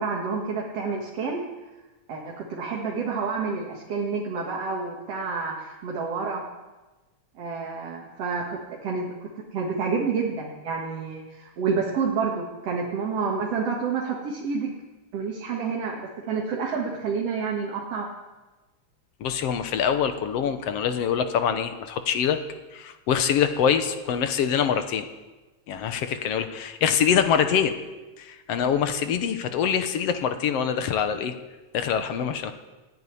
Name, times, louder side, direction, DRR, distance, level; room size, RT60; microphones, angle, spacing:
voice 1, 0.0-1.4 2.1-6.4 7.4-14.7 15.1-18.1, right 5 dB, 60° right, -2 dB, 2.8 m, -29 dB
voice 2, 19.2-22.4 22.7-25.1 25.7-27.7 28.2-31.4 31.7-32.5, left 8 dB, 65° left, 9 dB, 2.0 m, -24 dB
15.0 x 9.5 x 10.0 m, 1.2 s
omnidirectional pair, 3.3 m